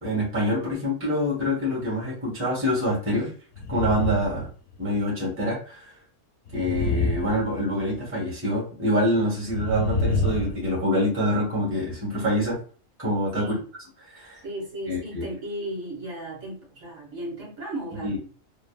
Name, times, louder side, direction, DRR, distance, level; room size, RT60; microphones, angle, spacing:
voice 1, 0.0-3.3 3.7-4.5 4.8-5.8 6.5-12.6 13.0-13.5 14.1-14.4 14.9-15.2 18.0-18.2, equal, 10° right, -3 dB, 1.0 m, -26 dB
sound 1, 3.6-4.5 4.8-5.0 6.5-8.0 9.5-10.7, left 3 dB, 65° left, 0.8 m, -27 dB
voice 2, 14.4-18.3, right 1 dB, 75° right, -4 dB, 1.7 m, -35 dB
3.2 x 2.2 x 2.2 m, 0.42 s
omnidirectional pair, 1.4 m